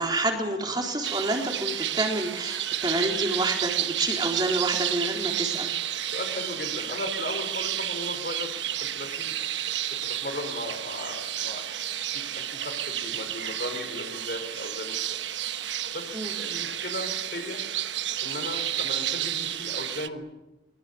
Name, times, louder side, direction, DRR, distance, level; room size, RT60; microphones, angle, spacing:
voice 1, 0.0-5.7 16.1-16.3, right 2 dB, 25° right, 1 dB, 3.9 m, -28 dB
sound 1, 1.0-20.1, right 11 dB, 90° right, 1.2 m, -31 dB
voice 2, 6.1-8.5 8.8-9.4 9.9-11.6 12.1-15.2 15.9-17.6 18.2-20.2, left 1 dB, 55° left, 5 dB, 5.2 m, -36 dB
23.0 x 23.0 x 8.6 m, 0.95 s
head